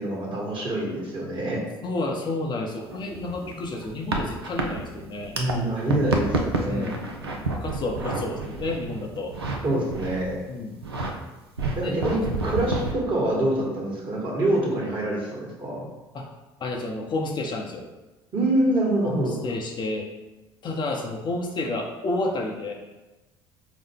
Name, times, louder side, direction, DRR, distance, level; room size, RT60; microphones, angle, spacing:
voice 1, 0.0-1.6 5.3-6.9 9.6-10.4 11.7-15.9 18.3-19.4, right 1 dB, 40° right, -3 dB, 1.3 m, -25 dB
voice 2, 1.8-5.4 6.3-9.3 10.5-10.8 11.8-12.0 12.3-12.9 16.1-16.3 16.6-17.9 19.0-20.1 20.6-22.7, left 2 dB, 35° left, 0 dB, 0.6 m, -31 dB
sound 1, 2.8-5.5 5.8-9.6 9.9-10.3 10.7-11.1 11.6-12.9, right 3 dB, 85° right, 0.4 m, -29 dB
4.9 x 2.1 x 3.4 m, 1.1 s
figure-of-eight pair, 55°, 13 cm